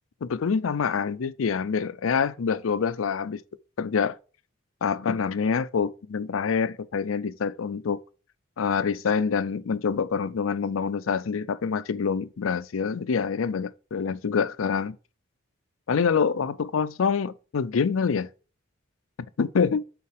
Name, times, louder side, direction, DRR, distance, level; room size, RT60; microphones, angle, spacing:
voice 1, 0.2-3.4 3.8-4.2 4.8-8.0 8.6-15.0 15.9-18.3 19.4-19.8, left 6 dB, 90° left, 0.5 m, -26 dB
5.6 x 4.3 x 4.8 m
head